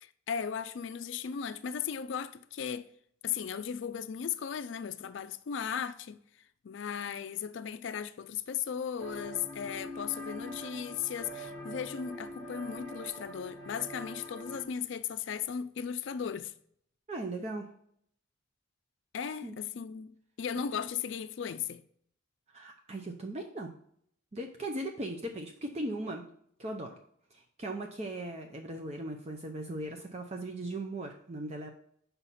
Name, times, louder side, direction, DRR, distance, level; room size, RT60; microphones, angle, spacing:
voice 1, 0.0-2.9 3.2-6.2 6.6-16.5 19.1-20.1 20.4-21.8, left 7 dB, 65° left, 0.4 m, -36 dB
sound 1, 9.0-14.6, equal, 55° right, 1.8 m, -43 dB
voice 2, 17.1-17.7 19.4-19.5 22.5-23.7 24.3-26.3 26.6-27.0 27.3-31.7, right 1 dB, 30° right, 0.6 m, -38 dB
7.3 x 5.6 x 4.1 m
head